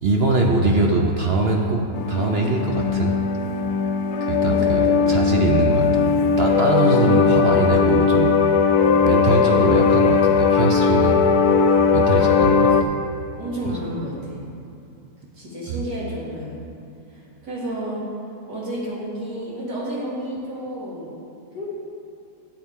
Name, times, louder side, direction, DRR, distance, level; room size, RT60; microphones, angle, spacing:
voice 1, 0.0-3.2 4.2-6.1 6.4-8.5 9.0-11.2 11.9-12.7 15.7-15.8, right 3 dB, 55° right, 1 dB, 0.7 m, -22 dB
sound 1, 1.9-12.8, left 6 dB, 80° left, 1.2 m, -18 dB
voice 2, 4.4-5.1 7.0-7.5 12.7-12.9 13.4-14.4 15.3-16.5 17.1-18.0 18.5-21.1 21.5-21.7, equal, 90° right, -8 dB, 3.2 m, -31 dB
13.0 x 7.7 x 3.6 m, 2.6 s
omnidirectional pair, 1.7 m